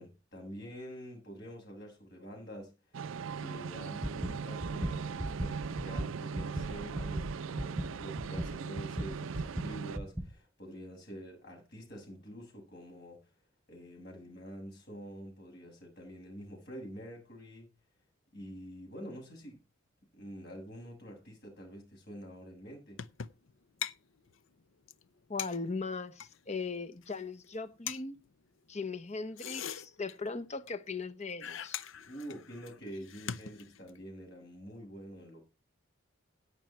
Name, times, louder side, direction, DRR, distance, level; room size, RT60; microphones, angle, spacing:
voice 1, 0.0-2.7 3.4-13.3 13.7-17.7 18.3-19.6 20.2-23.0 32.0-35.5, equal, 55° left, 7.5 m, -47 dB
sound 1, 2.9-10.0, right 6 dB, 85° right, 0.5 m, -39 dB
sound 2, 4.0-10.3, right 1 dB, 10° right, 1.4 m, -38 dB
sound 3, 23.0-23.5 23.8-23.9 24.3-24.4 24.6-24.7 24.9-25.0 25.4-26.4 26.9-27.2 27.4-27.6 27.9-28.0 29.2-30.4 30.7-30.8 31.0-31.1 31.4-34.0, left 8 dB, 80° left, 0.7 m, -41 dB
voice 2, 25.3-28.2 28.7-31.8, left 4 dB, 35° left, 1.0 m, -38 dB
17.0 x 6.2 x 4.5 m
head